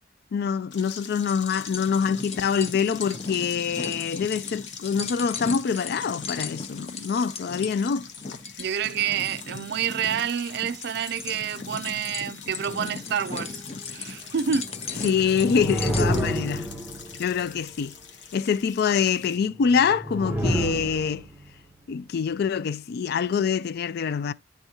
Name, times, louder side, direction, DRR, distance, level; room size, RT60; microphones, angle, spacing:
voice 1, 0.3-8.1 15.0-16.7 17.2-17.9 18.3-21.3 21.9-24.3, left 6 dB, 55° left, 0.3 m, -25 dB
sound 1, 0.7-19.4, left 7 dB, 75° left, 1.1 m, -44 dB
sound 2, 1.2-16.3, left 4 dB, 35° left, 0.7 m, -37 dB
voice 2, 8.6-13.6 13.9-14.7, right 8 dB, 60° right, 0.4 m, -28 dB
sound 3, 14.6-17.6 19.6-21.5, right 1 dB, 10° right, 0.7 m, -29 dB
10.5 x 3.6 x 2.8 m
head